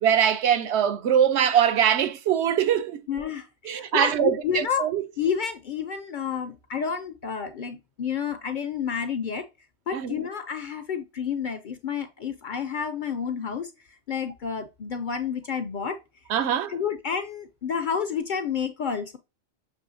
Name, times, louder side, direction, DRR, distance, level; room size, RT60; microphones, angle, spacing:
voice 1, 0.0-3.0 3.6-5.0 9.9-10.2 16.3-16.7, right 9 dB, 75° right, 0.9 m, -22 dB
voice 2, 3.1-4.9 5.2-9.5 9.9-13.7 14.1-16.0 16.7-19.2, left 7 dB, 55° left, 0.5 m, -30 dB
6.2 x 3.0 x 2.6 m
omnidirectional pair, 1.2 m